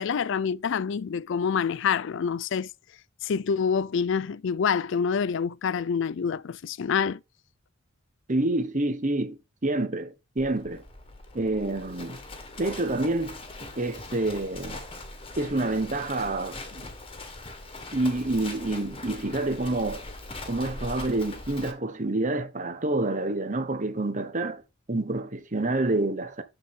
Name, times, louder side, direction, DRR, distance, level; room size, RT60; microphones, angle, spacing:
voice 1, 0.0-2.7 3.2-7.2, left 6 dB, 60° left, 0.4 m, -27 dB
voice 2, 8.3-10.8 11.3-12.2 12.6-14.8 15.4-16.9 17.9-20.0 20.5-24.6 24.9-26.4, right 2 dB, 40° right, 1.3 m, -28 dB
Livestock farm animals working animals, 10.4-21.7, left 2 dB, 25° left, 1.6 m, -41 dB
13.0 x 4.5 x 3.7 m
head